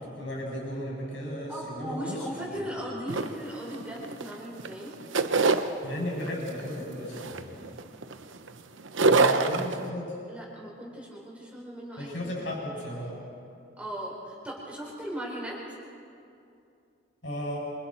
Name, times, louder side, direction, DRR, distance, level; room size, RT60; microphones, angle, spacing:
voice 1, 0.0-2.1 5.8-7.7 9.0-10.1 12.0-13.1 17.2-17.6, equal, 70° left, -3 dB, 7.8 m, -35 dB
voice 2, 1.5-4.9 9.2-9.5 10.3-12.6 13.8-15.8, equal, 5° right, -4 dB, 4.4 m, -38 dB
sound 1, 3.1-4.3 4.6-5.7 6.3-6.6 7.1-8.5 8.8-9.9, right 3 dB, 85° right, 0.9 m, -24 dB
28.0 x 25.5 x 4.6 m, 2.5 s
head